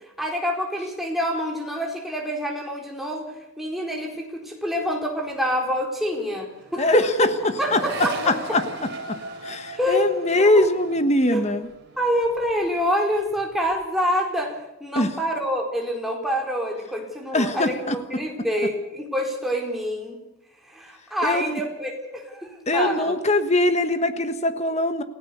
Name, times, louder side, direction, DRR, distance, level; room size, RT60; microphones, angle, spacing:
voice 1, 0.2-7.0 7.6-8.6 9.8-10.1 10.4-10.6 11.3-11.4 12.0-20.2 20.7-23.2, equal, ahead, 0 dB, 4.4 m, -27 dB
Accelerating revving vroom, 5.0-5.1 5.3-12.9 13.2-13.8, right 2 dB, 55° right, 3.8 m, -39 dB
voice 2, 6.8-7.3 7.7-7.8 8.2-8.6 9.1-9.2 9.4-11.7 14.9-15.1 17.3-17.9 21.2-21.6 22.7-25.0, left 1 dB, 30° left, 9 dB, 1.4 m, -21 dB
28.5 x 16.5 x 6.9 m, 0.87 s
head